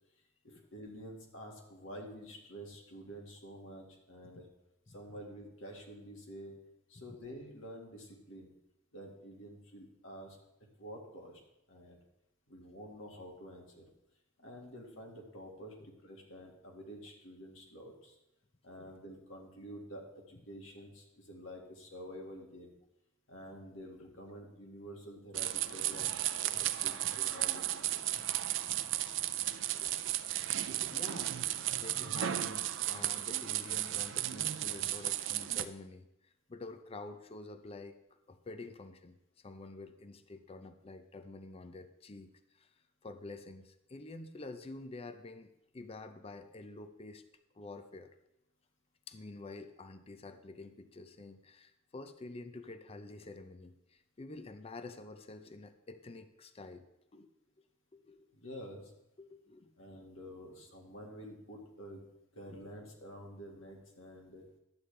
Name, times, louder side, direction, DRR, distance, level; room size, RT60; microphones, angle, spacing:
voice 1, 0.4-4.5 4.9-6.6 6.9-8.5 8.9-10.4 10.8-11.4 11.7-12.0 12.5-13.9 14.4-18.1 18.6-22.8 23.3-26.1 26.4-28.2 58.3-58.9 59.8-62.0 62.3-64.5, equal, 65° left, 0 dB, 1.9 m, -49 dB
sound 1, 25.3-35.6, right 13 dB, 60° right, 0.4 m, -34 dB
voice 2, 29.7-30.2 30.7-31.5 31.8-38.0 38.3-42.7 43.0-47.2 47.5-48.2 49.1-56.8 57.1-57.3 57.9-58.3 59.2-60.0 62.5-62.6, left 3 dB, 30° left, 9 dB, 0.5 m, -48 dB
11.5 x 8.4 x 3.3 m, 0.85 s
head